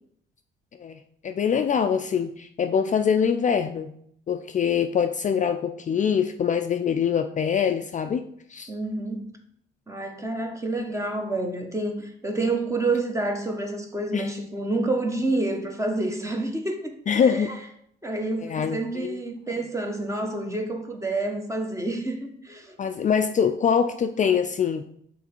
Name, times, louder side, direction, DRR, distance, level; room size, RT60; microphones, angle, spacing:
voice 1, 0.8-3.9 4.3-8.2 8.5-8.7 14.1-14.3 17.1-17.6 18.4-19.2 22.8-24.8, left 7 dB, 40° left, 0.4 m, -24 dB
voice 2, 8.7-9.3 9.9-17.6 18.0-22.8, right 2 dB, 15° right, 1.1 m, -28 dB
5.9 x 3.8 x 4.4 m
cardioid pair, 90°, 20 cm